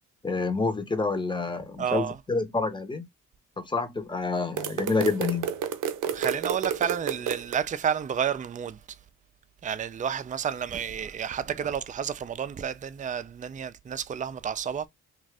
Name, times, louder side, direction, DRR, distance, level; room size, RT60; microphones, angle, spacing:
voice 1, 0.2-3.1 3.6-5.5, left 3 dB, 15° left, 0.8 m, -28 dB
voice 2, 1.8-2.2 6.1-8.8 9.6-14.9, right 8 dB, 25° right, 0.4 m, -30 dB
sound 1, 4.6-7.6, right 8 dB, 85° right, 0.6 m, -30 dB
2.5 x 2.4 x 3.3 m
supercardioid pair, 60°, 31 cm